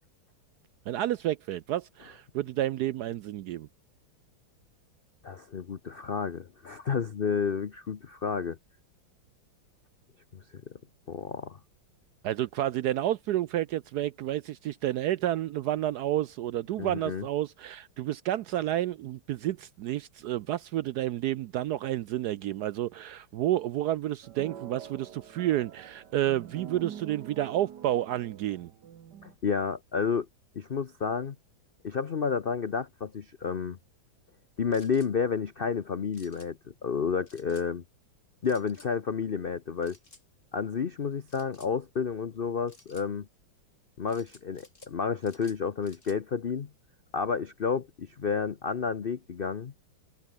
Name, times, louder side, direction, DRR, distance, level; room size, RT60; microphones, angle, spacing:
voice 1, 0.9-3.7 12.2-28.7, right 13 dB, 75° right, 0.9 m, -30 dB
voice 2, 5.2-8.6 10.3-10.4 11.1-11.6 16.8-17.3 29.2-30.3 30.5-31.4 31.8-33.8 34.6-37.8 38.4-40.0 40.5-43.3 44.0-46.7 47.1-49.7, left 6 dB, 90° left, 0.5 m, -31 dB
sound 1, 24.2-29.3, right 9 dB, 60° right, 1.8 m, -45 dB
sound 2, 34.7-35.1 36.1-36.5 37.3-37.7 38.5-38.9 39.8-40.2 41.3-41.7 42.7-43.1 44.1-44.9 45.2-46.2, left 2 dB, 35° left, 5.0 m, -56 dB
omnidirectional pair, 2.2 m